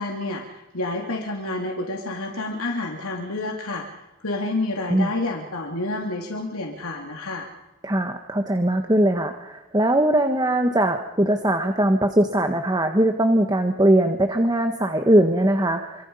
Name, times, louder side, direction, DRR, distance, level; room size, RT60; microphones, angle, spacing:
voice 1, 0.0-3.9 4.2-7.5, left 2 dB, 85° left, 0 dB, 3.1 m, -29 dB
voice 2, 7.8-16.1, right 1 dB, 20° right, 5 dB, 1.4 m, -20 dB
27.0 x 26.0 x 5.6 m, 1.1 s
head